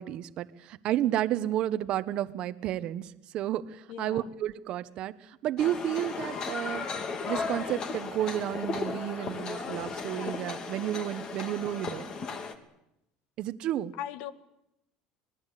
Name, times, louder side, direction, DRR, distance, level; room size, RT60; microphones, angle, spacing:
voice 1, 0.0-6.9 7.3-12.1 13.4-13.9, right 12 dB, 55° right, 12 dB, 1.1 m, -31 dB
voice 2, 3.9-4.3 14.0-14.3, left 11 dB, 70° left, 12 dB, 1.8 m, -38 dB
sound 1, 5.6-12.5, left 4 dB, 40° left, 2.8 m, -35 dB
26.5 x 20.0 x 8.3 m, 0.84 s
supercardioid pair, 120°, 2 cm